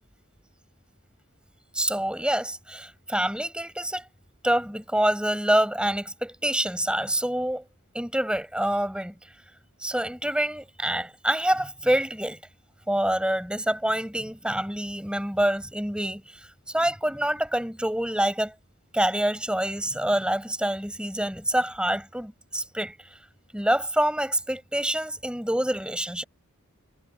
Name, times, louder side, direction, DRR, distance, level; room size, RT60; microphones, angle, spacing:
voice 1, 1.7-4.1 4.4-7.6 7.9-9.2 9.8-12.4 12.9-18.5 18.9-22.9 23.5-26.2, right 1 dB, 5° right, 7.6 m, -26 dB
head